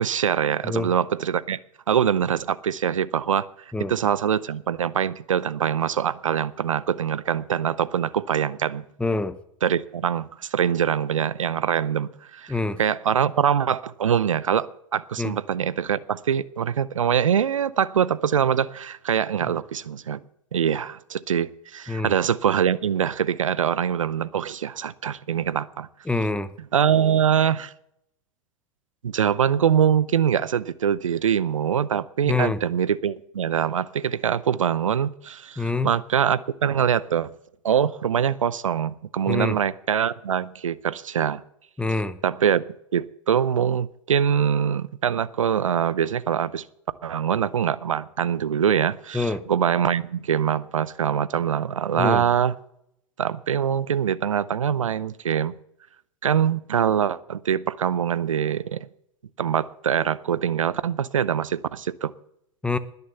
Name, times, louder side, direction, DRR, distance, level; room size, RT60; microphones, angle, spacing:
voice 1, 0.0-1.6 1.9-3.5 3.9-8.8 9.6-12.5 12.8-20.2 20.5-25.9 26.7-27.7 29.0-37.3 37.6-41.4 42.2-42.6 42.9-46.7 47.0-52.5 53.2-55.5 56.2-58.9 59.4-62.1, right 8 dB, 85° right, 0.6 m, -23 dB
voice 2, 9.0-9.4 12.5-12.8 15.2-15.3 21.9-22.1 26.1-26.5 32.3-32.6 35.6-35.9 39.3-39.6 41.8-42.2 49.1-49.4 52.0-52.3 62.6-62.8, left 3 dB, 5° left, 0.8 m, -25 dB
20.5 x 6.9 x 6.9 m
hypercardioid pair, 105°, 16 cm